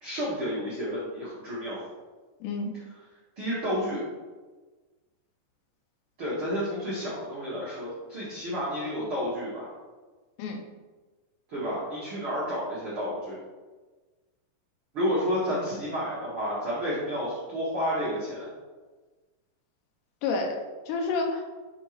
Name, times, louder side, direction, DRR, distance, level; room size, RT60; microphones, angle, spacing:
voice 1, 0.0-1.8 3.4-4.0 6.2-9.7 11.5-13.4 14.9-18.5, equal, 70° right, -9 dB, 1.2 m, -30 dB
voice 2, 2.4-2.7 10.4-10.6 20.2-21.4, left 3 dB, 85° left, 3 dB, 2.8 m, -29 dB
6.6 x 5.3 x 3.2 m, 1.3 s
omnidirectional pair, 5.1 m